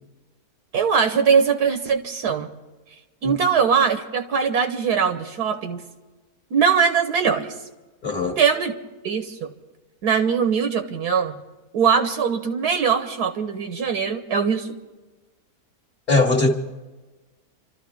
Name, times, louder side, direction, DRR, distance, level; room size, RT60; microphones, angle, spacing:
voice 1, 0.7-2.5 3.2-5.8 6.5-7.5 8.4-8.7 9.0-9.5 10.0-11.4 11.7-14.7, right 6 dB, 85° right, 6 dB, 1.7 m, -21 dB
voice 2, 8.0-8.4 16.1-16.5, left 3 dB, 25° left, -2 dB, 1.6 m, -20 dB
29.5 x 13.0 x 3.6 m, 1.2 s
omnidirectional pair, 1.7 m